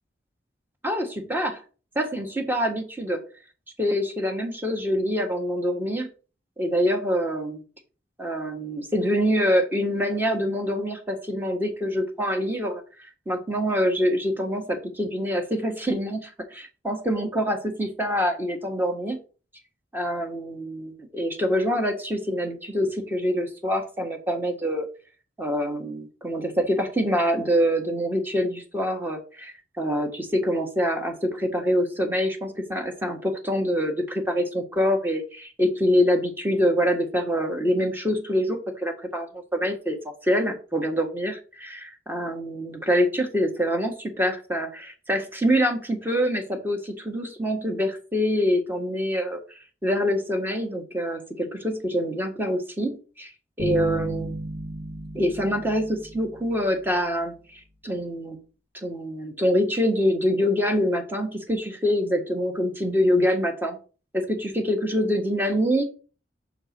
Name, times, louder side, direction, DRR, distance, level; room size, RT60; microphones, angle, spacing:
voice 1, 0.8-1.6 1.9-3.2 3.8-6.1 6.6-7.6 8.2-19.2 19.9-24.9 25.4-49.4 49.8-53.3 53.6-54.3 55.1-57.3 57.8-58.4 58.7-63.8 64.1-65.8, equal, 10° right, 4 dB, 1.5 m, -25 dB
sound 1, 53.6-57.0, right 1 dB, 70° right, 2.4 m, -34 dB
6.3 x 4.5 x 5.9 m, 0.36 s
head